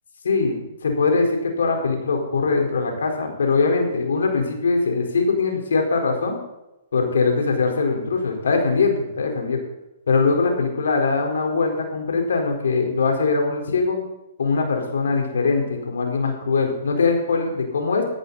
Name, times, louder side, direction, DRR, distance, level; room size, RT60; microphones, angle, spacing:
voice 1, 0.2-6.4 6.9-9.6 10.1-14.0 14.4-18.0, left 4 dB, 80° left, 3 dB, 4.5 m, -22 dB
14.5 x 14.5 x 4.2 m, 0.95 s
hypercardioid pair, 130°, 0 cm